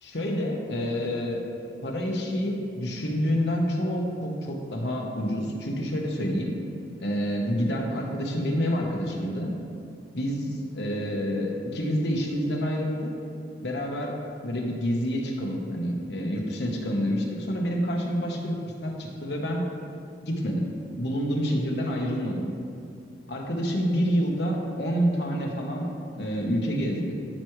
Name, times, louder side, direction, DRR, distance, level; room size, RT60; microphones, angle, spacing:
voice 1, 0.0-1.4 1.8-6.6 7.0-9.5 10.1-13.1 13.6-14.2 14.4-19.6 20.2-22.5 23.3-25.9 26.2-27.1, equal, 65° left, 0 dB, 1.1 m, -28 dB
13.0 x 4.8 x 3.2 m, 2.4 s
head